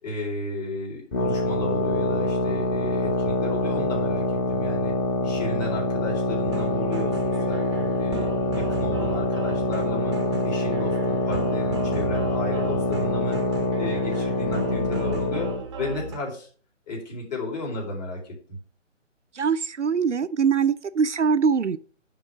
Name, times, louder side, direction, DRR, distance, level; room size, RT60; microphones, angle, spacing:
voice 1, 0.0-4.9 5.2-10.1 10.4-13.4 13.8-15.5 15.8-16.5 16.9-18.6, left 1 dB, 35° left, 4.1 m, -33 dB
sound 1, 1.1-15.6, left 2 dB, 15° left, 1.8 m, -25 dB
sound 2, 6.5-16.2, right 4 dB, 25° right, 0.9 m, -35 dB
voice 2, 19.3-21.8, right 6 dB, 70° right, 0.6 m, -22 dB
9.9 x 3.8 x 6.0 m
figure-of-eight pair, 145°, 37 cm